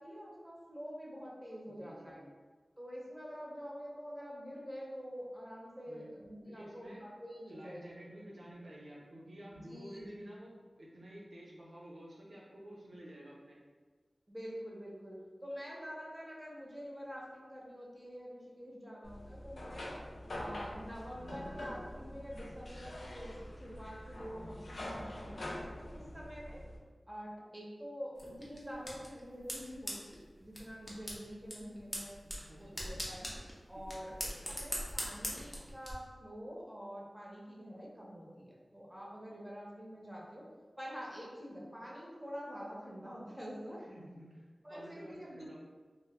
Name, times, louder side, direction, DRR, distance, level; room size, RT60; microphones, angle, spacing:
voice 1, 0.0-2.2 2.8-7.9 9.5-10.2 14.3-19.9 20.3-26.6 27.1-32.2 32.6-33.3 33.7-40.4 40.8-43.8 44.6-45.6, equal, 10° right, -4 dB, 0.6 m, -47 dB
voice 2, 1.7-2.2 5.9-6.1 6.4-7.1 7.5-13.6 25.8-26.1 32.2-32.9 33.7-34.1 43.9-45.6, equal, 90° right, -5 dB, 0.6 m, -52 dB
sound 1, 19.0-26.8, left 1 dB, 85° left, 0.4 m, -45 dB
sound 2, 28.2-35.9, equal, 30° left, 0.6 m, -43 dB
2.1 x 2.0 x 3.3 m, 1.4 s
wide cardioid pair, 75°, 0 cm